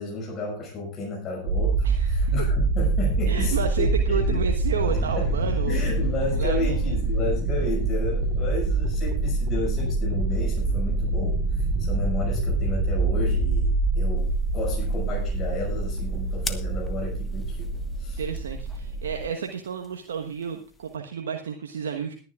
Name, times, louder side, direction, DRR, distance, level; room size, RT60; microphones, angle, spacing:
voice 1, 0.0-4.4 4.9-5.3 5.7-17.7 18.0-18.2, left 2 dB, 35° left, -2 dB, 6.3 m, -32 dB
sound 1, 1.5-19.2, right 2 dB, 50° right, 4.2 m, -25 dB
voice 2, 1.8-2.3 3.3-5.8 6.3-7.1 18.2-22.1, right 7 dB, 75° right, 3 dB, 1.2 m, -31 dB
sound 2, 4.9-19.7, right 2 dB, 15° right, 6.2 m, -48 dB
sound 3, 14.2-21.0, left 3 dB, 15° left, 1.5 m, -44 dB
21.0 x 10.5 x 2.5 m, 0.38 s
hypercardioid pair, 90°, 0 cm